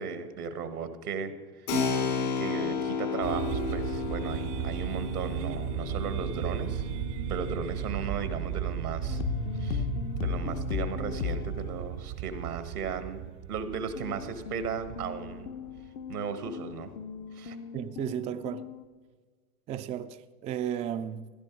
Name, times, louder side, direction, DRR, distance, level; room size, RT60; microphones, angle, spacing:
voice 1, 0.0-1.7 2.4-6.9 7.3-9.2 9.6-9.9 10.2-15.5 16.1-16.9 17.3-17.6, right 6 dB, 90° right, 1.6 m, -36 dB
Keyboard (musical), 1.7-10.1, left 6 dB, 80° left, 4.9 m, -34 dB
sound 1, 3.2-16.1, right 14 dB, 50° right, 0.7 m, -35 dB
sound 2, 9.1-12.2 14.0-18.8, left 11 dB, 65° left, 0.9 m, -37 dB
voice 2, 17.7-18.7 19.7-21.3, right 10 dB, 20° right, 0.3 m, -34 dB
15.5 x 12.0 x 4.5 m
hypercardioid pair, 95°, 44 cm